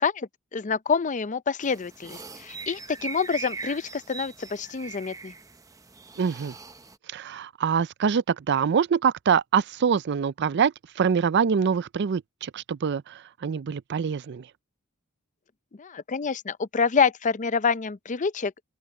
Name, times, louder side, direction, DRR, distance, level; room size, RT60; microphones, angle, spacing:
voice 1, 0.0-5.3 15.8-18.5, left 5 dB, 35° left, 0.5 m, -27 dB
sound 1, 1.6-7.0, right 3 dB, 15° right, 0.7 m, -40 dB
voice 2, 6.2-6.5 7.1-14.5, right 6 dB, 55° right, 0.4 m, -25 dB
open air
head